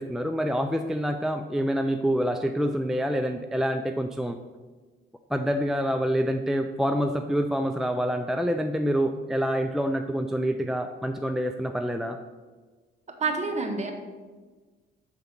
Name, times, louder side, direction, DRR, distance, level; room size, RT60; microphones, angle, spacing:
voice 1, 0.0-4.4 5.3-12.2, equal, ahead, 6 dB, 0.4 m, -27 dB
voice 2, 13.2-13.9, right 4 dB, 35° right, 3 dB, 1.4 m, -27 dB
7.0 x 4.0 x 6.5 m, 1.4 s
cardioid pair, 90°, 20 cm